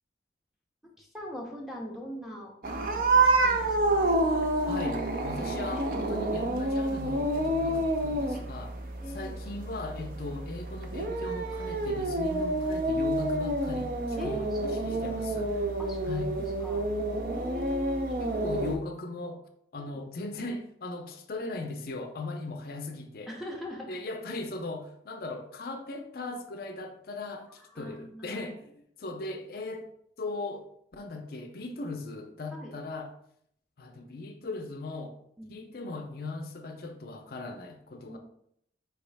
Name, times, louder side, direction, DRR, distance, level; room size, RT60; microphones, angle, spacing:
voice 1, 1.0-4.1 7.6-7.8 9.0-9.4 12.3-12.4 14.2-15.2 15.8-16.1 16.3-16.9 17.3-18.4 19.8-19.9 23.3-24.0 27.5-28.4 32.5-32.7 35.4-35.6 38.0-38.2, equal, ahead, 0.8 m, -42 dB
sound 1, 2.6-18.8, right 2 dB, 50° right, 0.5 m, -28 dB
voice 2, 4.7-8.8 9.1-14.6 14.9-15.7 16.0-16.4 18.2-19.4 19.7-23.3 23.9-29.9 30.2-33.1 33.8-35.2 35.5-38.2, left 2 dB, 50° left, 0.5 m, -38 dB
4.7 x 3.0 x 3.4 m
head